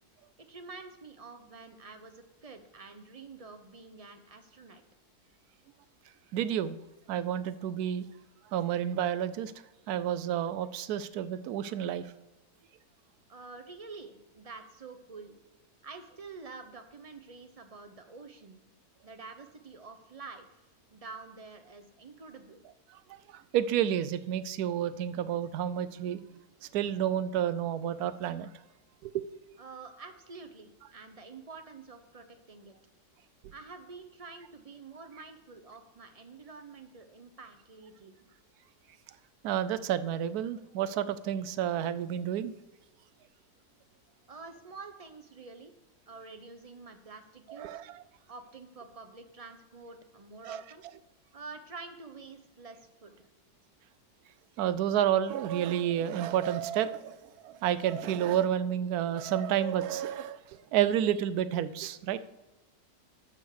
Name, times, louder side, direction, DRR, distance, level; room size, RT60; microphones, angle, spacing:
voice 1, 0.5-4.8 13.3-15.3 15.8-18.6 19.0-22.6 29.6-32.7 33.5-38.2 44.3-45.7 46.1-47.8 48.3-50.9 51.3-53.3, right 4 dB, 50° right, 7 dB, 0.4 m, -48 dB
voice 2, 6.3-6.8 7.1-8.1 8.5-9.5 9.9-12.1 23.1-26.2 26.6-28.5 29.0-29.2 39.4-42.5 47.5-48.0 50.4-50.6 54.6-62.3, right 10 dB, 75° right, 14 dB, 1.1 m, -30 dB
12.5 x 5.1 x 6.4 m, 1.1 s
omnidirectional pair, 1.7 m